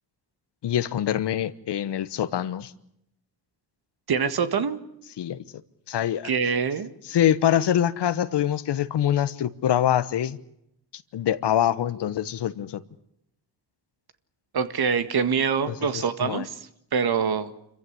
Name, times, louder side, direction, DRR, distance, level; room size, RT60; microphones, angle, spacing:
voice 1, 0.6-2.7 5.2-5.4 5.9-6.3 7.1-10.4 10.9-12.8 15.7-16.5, left 10 dB, 70° left, 1.2 m, -25 dB
voice 2, 4.1-4.8 6.2-6.9 14.5-16.6 16.9-17.5, right 6 dB, 55° right, 1.8 m, -25 dB
27.0 x 15.0 x 9.8 m
cardioid pair, 70°, 44 cm